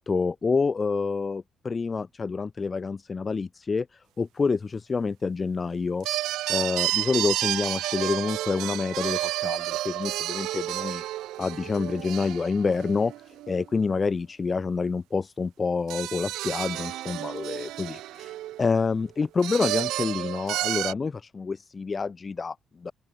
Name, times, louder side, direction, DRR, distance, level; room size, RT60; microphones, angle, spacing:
voice 1, 0.0-6.1 6.5-11.0 11.4-22.9, left 4 dB, 35° left, 1.0 m, -28 dB
sound 1, 6.0-13.6 15.9-18.9 19.4-20.9, right 15 dB, 90° right, 0.5 m, -31 dB
open air
cardioid pair, 90°, 0 cm